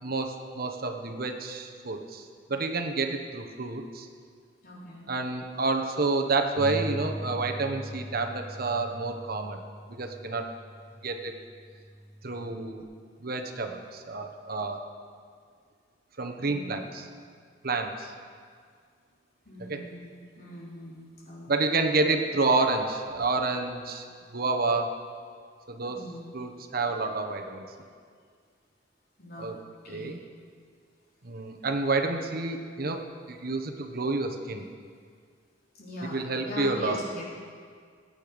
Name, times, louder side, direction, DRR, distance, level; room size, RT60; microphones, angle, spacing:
voice 1, 0.0-4.1 5.1-9.6 9.9-10.5 11.0-11.3 12.2-12.9 13.2-14.8 16.2-17.0 17.6-18.1 19.7-19.8 21.5-24.9 25.7-26.0 26.3-27.6 29.4-29.6 29.9-30.2 31.2-33.0 33.3-34.6 36.1-37.0, right 3 dB, 55° right, 5 dB, 1.1 m, -29 dB
voice 2, 4.6-5.1 16.4-17.0 19.5-21.7 25.9-26.3 29.2-29.5 29.8-30.2 35.7-37.2, left 1 dB, 55° left, -5 dB, 3.7 m, -41 dB
Bass guitar, 6.6-12.8, equal, 20° right, 1.3 m, -40 dB
19.5 x 9.1 x 5.2 m, 2.1 s
head